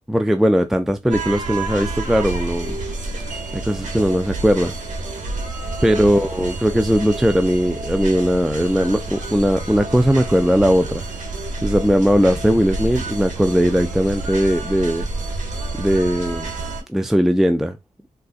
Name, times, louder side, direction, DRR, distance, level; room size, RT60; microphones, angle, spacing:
voice 1, 0.1-2.8 3.5-4.7 5.8-11.0 11.6-15.1 15.8-16.5 16.9-17.8, equal, 5° right, 0.3 m, -18 dB
sound 1, 1.1-16.8, right 3 dB, 65° right, 1.0 m, -29 dB
3.7 x 2.3 x 2.4 m
cardioid pair, 75°, 14 cm